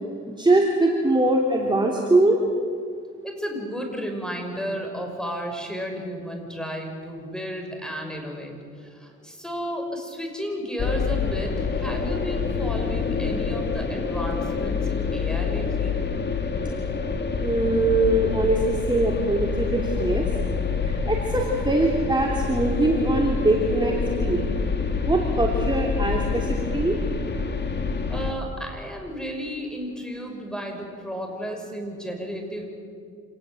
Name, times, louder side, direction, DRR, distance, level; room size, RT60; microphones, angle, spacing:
voice 1, 0.2-2.4 17.4-20.3 20.8-23.9 24.2-24.4 25.0-27.0, right 2 dB, 15° right, -1 dB, 3.2 m, -22 dB
voice 2, 3.2-15.9 28.1-32.7, equal, ahead, 3 dB, 5.8 m, -33 dB
sound 1, 10.8-28.3, left 5 dB, 35° left, 2.3 m, -27 dB
27.0 x 19.0 x 7.9 m, 2.2 s
cardioid pair, 90°, 30 cm